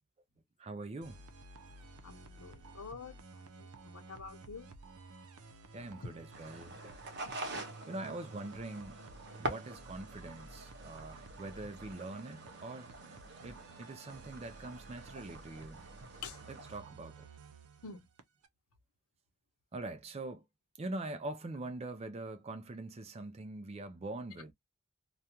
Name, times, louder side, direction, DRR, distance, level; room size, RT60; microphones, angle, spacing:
voice 1, 0.6-1.2 5.7-7.0 7.9-9.0 9.4-12.9 13.4-15.9 16.5-17.3 19.7-20.4 20.8-24.5, right 2 dB, 30° right, 0.3 m, -43 dB
sound 1, 1.0-18.5, right 3 dB, 85° right, 0.6 m, -54 dB
voice 2, 2.0-4.7 6.0-6.1 16.2-16.4 17.8-18.1, left 4 dB, 85° left, 0.8 m, -47 dB
sound 2, 6.3-16.8, right 1 dB, 50° right, 0.8 m, -46 dB
2.4 x 2.2 x 2.9 m
head